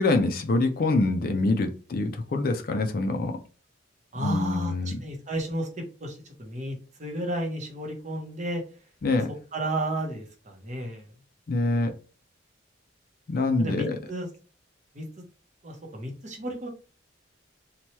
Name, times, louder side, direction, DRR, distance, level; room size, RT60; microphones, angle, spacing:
voice 1, 0.0-3.4 4.2-5.0 9.0-9.3 11.5-11.9 13.3-14.0, left 2 dB, 50° left, 0.4 m, -25 dB
voice 2, 4.1-5.7 6.0-8.6 9.5-11.1 13.6-14.3 14.9-15.1 15.6-16.7, right 1 dB, 35° right, 0.7 m, -32 dB
2.8 x 2.2 x 3.0 m
head